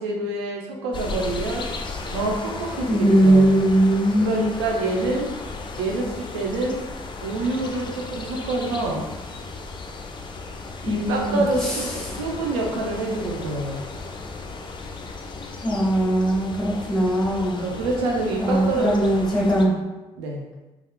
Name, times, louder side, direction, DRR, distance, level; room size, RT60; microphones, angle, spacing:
voice 1, 0.0-1.7 2.1-3.5 4.2-5.3 5.8-6.8 7.2-9.1 10.8-13.8 17.6-18.9 20.1-20.4, right 2 dB, 90° right, 0 dB, 0.4 m, -26 dB
sound 1, 0.9-19.7, left 3 dB, 35° left, 0.4 m, -35 dB
voice 2, 2.9-4.4 10.8-11.8 12.0-12.2 15.6-17.6 18.4-19.7, right 1 dB, 5° left, -6 dB, 1.5 m, -20 dB
3.4 x 2.3 x 2.2 m, 1.1 s
hypercardioid pair, 45°, 14 cm